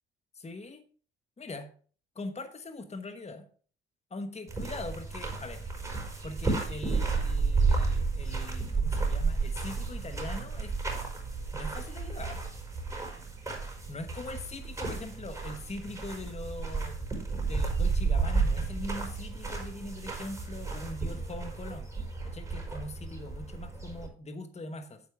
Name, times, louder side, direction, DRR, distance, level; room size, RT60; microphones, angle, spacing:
voice 1, 0.3-0.8 1.4-1.7 2.1-3.5 4.1-5.7 6.2-10.7 11.5-12.4 13.9-17.0 17.4-21.9 22.2-25.0, left 2 dB, 20° left, 9 dB, 1.2 m, -41 dB
sound 1, 4.5-24.1, right 4 dB, 10° right, 5.2 m, -32 dB
9.1 x 8.3 x 3.5 m, 0.42 s
hypercardioid pair, 50°, 30 cm